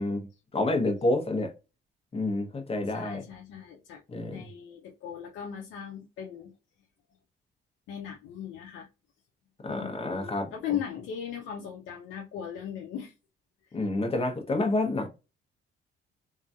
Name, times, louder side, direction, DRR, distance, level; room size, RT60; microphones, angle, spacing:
voice 1, 0.5-1.5 2.1-3.2 4.1-4.4 9.6-10.5 13.7-15.1, left 2 dB, 30° left, 0.9 m, -28 dB
voice 2, 2.9-4.0 4.3-6.5 7.9-8.9 9.7-13.1, left 9 dB, 85° left, 0.6 m, -38 dB
3.0 x 2.6 x 2.3 m
cardioid pair, 90°, 20 cm